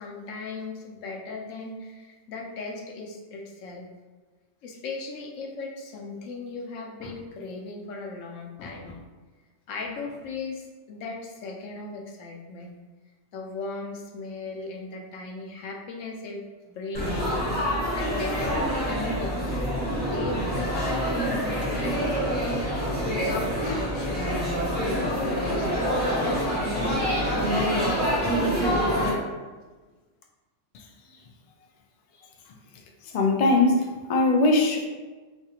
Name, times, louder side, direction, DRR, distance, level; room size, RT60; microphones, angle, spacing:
voice 1, 0.0-3.9 4.6-9.0 9.7-12.8 13.3-17.2 18.0-19.6 20.1-22.2 22.6-27.4 28.0-28.9 29.4-29.6, left 3 dB, 90° left, 1 dB, 1.0 m, -37 dB
Laughter / Chatter / Crowd, 16.9-29.1, equal, 10° left, 1.3 m, -26 dB
voice 2, 33.1-34.8, left 2 dB, 75° left, 2 dB, 0.3 m, -21 dB
4.5 x 2.4 x 2.8 m, 1.3 s
omnidirectional pair, 1.3 m